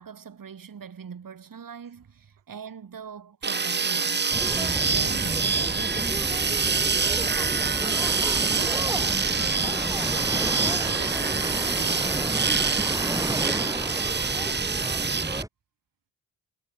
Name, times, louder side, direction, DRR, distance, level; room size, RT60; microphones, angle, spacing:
voice 1, 0.0-4.3 4.6-6.0, right 7 dB, 50° right, 3.4 m, -42 dB
sound 1, 3.4-15.4, right 5 dB, 25° right, 1.0 m, -26 dB
sound 2, 4.3-15.5, right 1 dB, 5° right, 4.8 m, -32 dB
sound 3, 4.7-13.2, left 19 dB, 80° left, 6.9 m, -45 dB
voice 2, 7.0-10.2 10.5-15.2, right 12 dB, 70° right, 7.6 m, -46 dB
hypercardioid pair, 40°, 44 cm